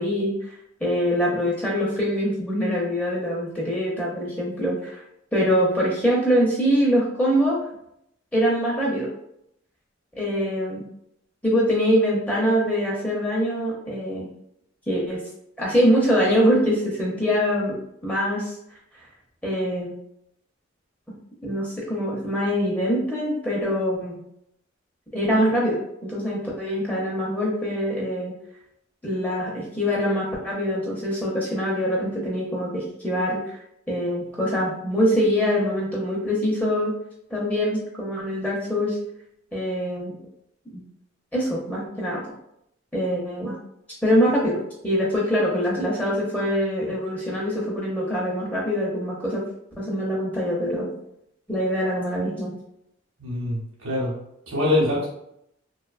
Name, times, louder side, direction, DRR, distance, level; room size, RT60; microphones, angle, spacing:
voice 1, 0.0-5.0 5.3-7.6 8.3-9.1 10.1-10.8 11.4-14.3 14.9-15.2 15.6-17.8 18.0-18.6 19.4-19.9 21.4-24.2 25.1-28.3 29.0-33.6 33.9-36.9 37.3-39.0 39.5-40.2 40.7-40.8 41.3-42.2 42.9-43.6 44.0-49.4 49.8-50.9 51.5-52.5, equal, 5° left, -5 dB, 0.5 m, -24 dB
voice 2, 53.2-54.1 54.5-55.1, left 2 dB, 80° right, -5 dB, 0.8 m, -24 dB
2.7 x 2.1 x 2.3 m, 0.76 s
head